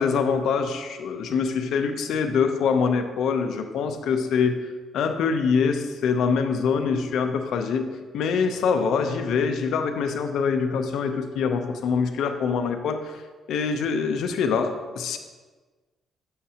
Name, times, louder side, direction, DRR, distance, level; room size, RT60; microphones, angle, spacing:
voice 1, 0.0-4.6 4.9-13.2 13.5-15.2, left 5 dB, 75° left, 6 dB, 0.6 m, -24 dB
6.9 x 6.5 x 2.8 m, 1.4 s
cardioid pair, 90°, 0 cm